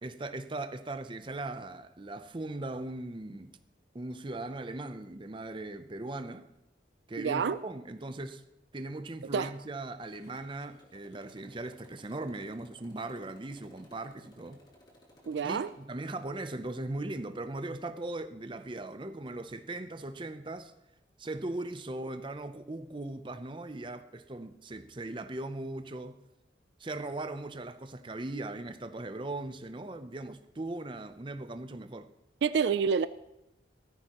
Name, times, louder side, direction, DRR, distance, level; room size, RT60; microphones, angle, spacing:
voice 1, 0.0-3.6 3.9-6.5 7.1-8.4 8.7-14.6 15.4-20.7 21.2-26.2 26.8-32.1, right 2 dB, 25° right, 0.6 m, -39 dB
voice 2, 7.2-7.6 9.3-9.5 15.3-15.7 32.4-33.1, right 6 dB, 70° right, 0.4 m, -28 dB
Motorcycle, 10.0-15.9, left 1 dB, 25° left, 2.1 m, -60 dB
17.0 x 14.0 x 3.0 m
head